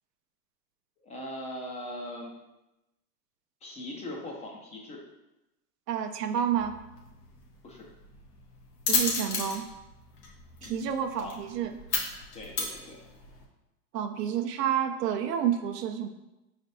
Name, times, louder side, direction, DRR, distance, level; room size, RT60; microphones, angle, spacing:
voice 1, 1.0-2.3 3.6-5.0 7.6-7.9 10.6-10.8 11.2-11.4 12.3-13.0, left 1 dB, 15° left, -1 dB, 0.5 m, -40 dB
voice 2, 5.9-6.8 8.9-9.6 10.6-11.7 13.9-16.1, right 9 dB, 80° right, 7 dB, 0.6 m, -29 dB
sound 1, 6.5-13.4, left 4 dB, 80° left, 1.2 m, -34 dB
5.2 x 3.3 x 2.6 m, 0.97 s
hypercardioid pair, 115°, 47 cm